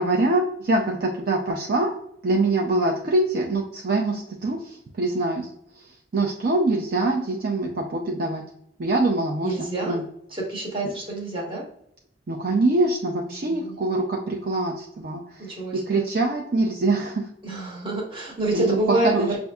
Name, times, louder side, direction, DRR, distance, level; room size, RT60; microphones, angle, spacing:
voice 1, 0.0-1.9 2.2-5.5 6.1-8.4 8.8-10.0 12.3-15.2 15.7-17.3 18.5-18.8 19.0-19.3, right 2 dB, 55° right, 0 dB, 0.5 m, -24 dB
voice 2, 9.4-10.0 10.3-11.6 13.3-13.8 15.4-16.0 17.4-19.4, right 2 dB, 30° right, -2 dB, 1.2 m, -27 dB
5.5 x 2.6 x 2.3 m, 0.71 s
head